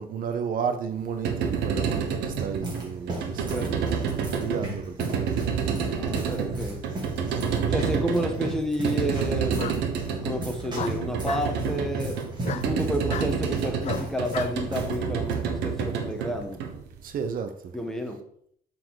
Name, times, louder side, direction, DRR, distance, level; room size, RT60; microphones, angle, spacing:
voice 1, 0.0-4.0 4.3-6.2 6.6-6.7 17.0-17.7, right 6 dB, 55° right, 0.8 m, -33 dB
sound 1, 1.0-17.2, right 6 dB, 85° right, 1.2 m, -29 dB
sound 2, 2.3-15.0 15.2-15.4 16.1-16.4, right 1 dB, 25° right, 2.8 m, -38 dB
voice 2, 3.5-3.8 5.9-6.8 7.7-9.9 10.2-16.6 17.7-18.2, equal, 5° left, 1.3 m, -30 dB
Bark, 7.5-8.0 9.6-9.8 10.7-11.5 12.4-12.7 13.1-13.3 13.8-14.5, left 8 dB, 40° left, 0.4 m, -34 dB
7.6 x 4.5 x 4.7 m
cardioid pair, 110°, 17 cm